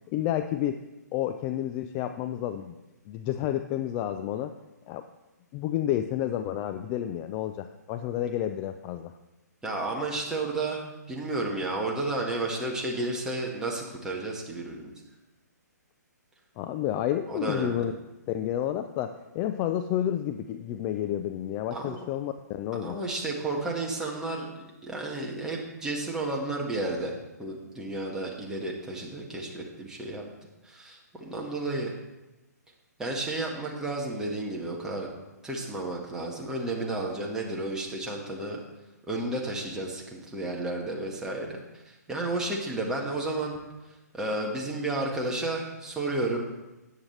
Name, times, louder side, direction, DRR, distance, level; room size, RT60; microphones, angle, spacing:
voice 1, 0.1-0.8 1.1-2.7 3.1-4.5 4.9-5.0 5.5-9.1 16.6-18.0 18.3-23.0, left 11 dB, 25° left, 8 dB, 0.4 m, -30 dB
voice 2, 9.6-14.9 17.3-17.8 21.7-22.0 22.8-27.1 27.4-30.2 30.6-31.9 33.0-35.1 35.4-38.6 39.1-43.6 44.1-46.4, right 2 dB, 5° right, -2 dB, 1.6 m, -32 dB
13.0 x 9.0 x 3.3 m, 1.0 s
figure-of-eight pair, 130°, 10 cm